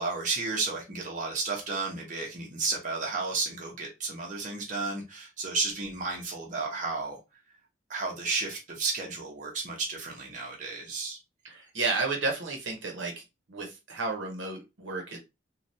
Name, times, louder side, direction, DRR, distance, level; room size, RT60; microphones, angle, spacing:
voice 1, 0.0-7.2 7.9-11.2, right 3 dB, 40° right, 0.8 m, -32 dB
voice 2, 11.4-13.2 13.5-15.2, right 3 dB, 80° right, 0.9 m, -32 dB
3.2 x 2.3 x 2.6 m
head